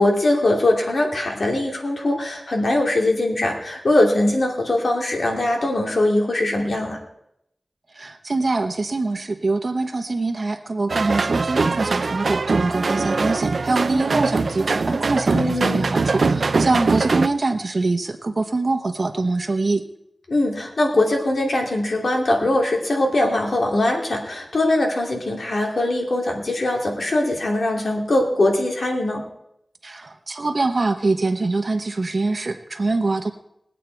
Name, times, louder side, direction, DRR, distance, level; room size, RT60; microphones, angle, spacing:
voice 1, 0.0-7.0 15.3-15.9 20.3-29.3, left 1 dB, 75° left, 0 dB, 2.6 m, -21 dB
voice 2, 8.0-19.8 29.8-33.3, right 3 dB, 60° right, 6 dB, 1.0 m, -24 dB
sound 1, 10.9-17.3, right 4 dB, 80° right, 0.5 m, -22 dB
21.0 x 8.3 x 4.6 m, 0.79 s
wide cardioid pair, 60°, 0 cm